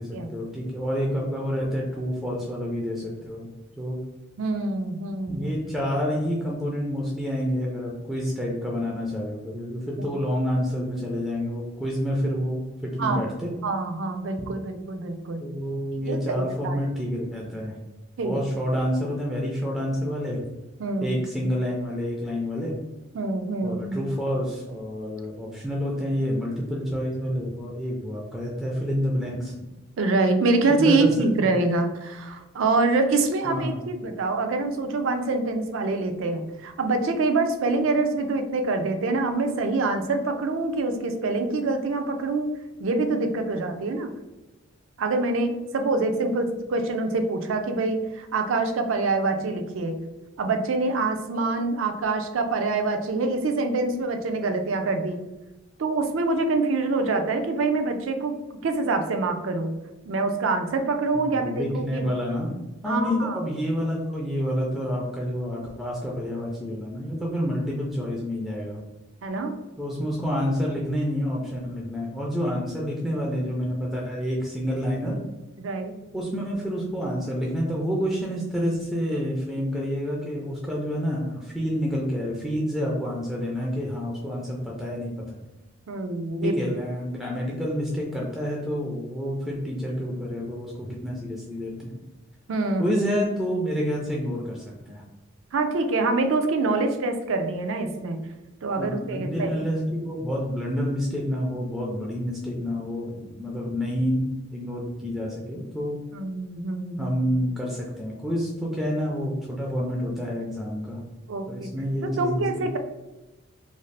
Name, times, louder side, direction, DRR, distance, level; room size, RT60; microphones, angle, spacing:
voice 1, 0.0-3.5 3.8-4.0 5.3-13.5 15.4-17.8 18.2-20.4 21.0-22.7 23.6-29.5 30.7-31.1 31.4-31.5 33.4-33.8 61.3-62.5 62.8-68.8 69.8-75.2 76.1-85.4 86.4-91.9 92.8-95.0 98.8-104.2 104.5-106.0 107.0-111.0 111.5-112.8, equal, ahead, -3 dB, 0.3 m, -28 dB
voice 2, 4.4-5.6 10.0-10.2 13.0-13.2 13.6-15.4 16.1-16.8 18.2-18.4 20.8-21.5 23.1-24.1 30.0-42.5 42.8-44.1 45.0-50.0 50.4-55.2 55.8-58.3 58.6-59.7 60.1-62.1 62.9-63.4 69.2-69.5 75.6-75.9 85.9-86.6 92.5-93.0 95.5-98.2 98.6-99.7 106.1-107.1 111.3-111.7 112.0-112.8, right 3 dB, 70° right, 6 dB, 0.4 m, -25 dB
2.5 x 2.4 x 3.2 m, 1.1 s
head